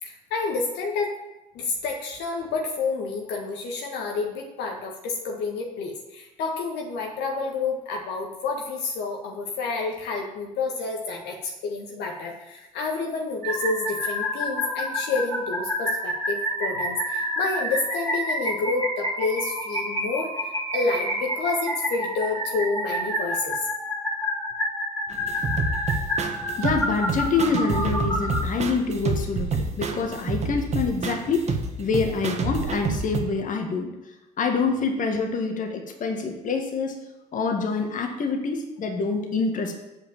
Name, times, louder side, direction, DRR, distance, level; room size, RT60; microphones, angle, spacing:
voice 1, 0.0-1.2 1.5-23.7, left 4 dB, 60° left, 0 dB, 1.6 m, -29 dB
sound 1, 13.4-28.4, equal, 15° left, 3.2 m, -29 dB
sound 2, 25.1-33.2, right 3 dB, 35° right, 1.5 m, -28 dB
voice 2, 26.6-33.9 34.4-37.0 37.3-39.7, left 4 dB, 40° left, 3 dB, 1.8 m, -26 dB
8.0 x 5.0 x 7.3 m, 1.0 s
hypercardioid pair, 60°, 20 cm